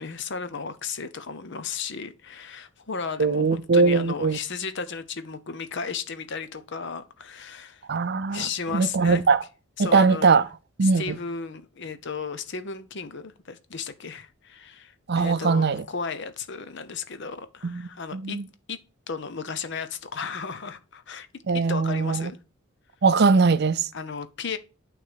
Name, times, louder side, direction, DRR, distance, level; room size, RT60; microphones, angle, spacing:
voice 1, 0.0-7.8 8.3-9.2 9.8-10.4 10.8-18.4 18.7-18.8 19.1-21.3 21.5-22.4 23.9-24.6, left 5 dB, 55° left, 0.8 m, -34 dB
voice 2, 3.2-4.4 7.9-8.5 8.7-9.4 9.8-10.4 10.8-11.2 15.1-15.8 17.6-18.5 21.5-22.3 23.0-23.9, right 4 dB, 50° right, 0.5 m, -21 dB
9.2 x 3.3 x 6.8 m
head